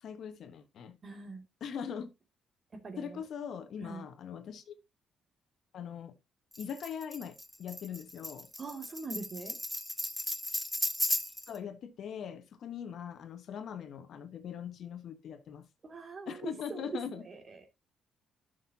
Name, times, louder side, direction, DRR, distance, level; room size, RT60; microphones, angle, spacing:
voice 1, 0.0-0.9 1.6-2.1 3.0-4.7 5.7-6.1 6.6-8.5 11.5-15.6 16.3-17.2, left 7 dB, 65° left, 1.3 m, -41 dB
voice 2, 1.0-1.4 2.7-3.2 3.8-4.1 8.6-9.6 15.8-16.9 17.1-17.7, right 4 dB, 40° right, 2.5 m, -43 dB
Tambourine, 6.5-11.6, left 1 dB, 5° left, 0.8 m, -35 dB
11.5 x 6.5 x 2.8 m
cardioid pair, 90°, 0 cm